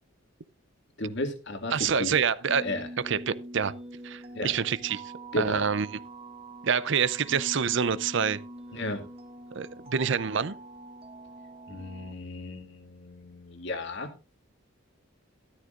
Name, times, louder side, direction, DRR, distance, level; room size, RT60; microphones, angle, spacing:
voice 1, 1.0-2.2 2.6-2.9 4.3-4.5 5.3-5.6 8.7-9.0 11.7-14.1, left 1 dB, 60° left, 2.3 m, -34 dB
voice 2, 1.7-2.7 3.0-3.7 4.0-6.0 6.6-8.4 9.5-10.6, right 6 dB, 60° right, 0.6 m, -27 dB
sound 1, 2.5-12.1, right 1 dB, 30° right, 1.1 m, -44 dB
13.5 x 13.0 x 2.5 m
head